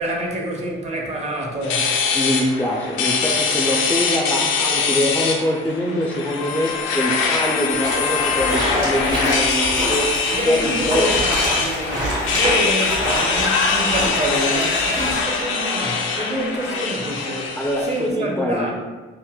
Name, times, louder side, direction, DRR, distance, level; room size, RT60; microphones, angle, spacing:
voice 1, 0.0-2.0 10.3-18.7, right 1 dB, 35° right, 0 dB, 0.6 m, -27 dB
sound 1, 1.6-18.1, left 5 dB, 90° left, 0.4 m, -22 dB
voice 2, 2.1-10.1 10.5-11.1 17.6-18.7, left 1 dB, 10° left, -3 dB, 0.3 m, -23 dB
sound 2, 7.7-15.2, right 1 dB, 75° right, 1.5 m, -27 dB
3.8 x 2.0 x 2.2 m, 1.3 s
cardioid pair, 90°, 20 cm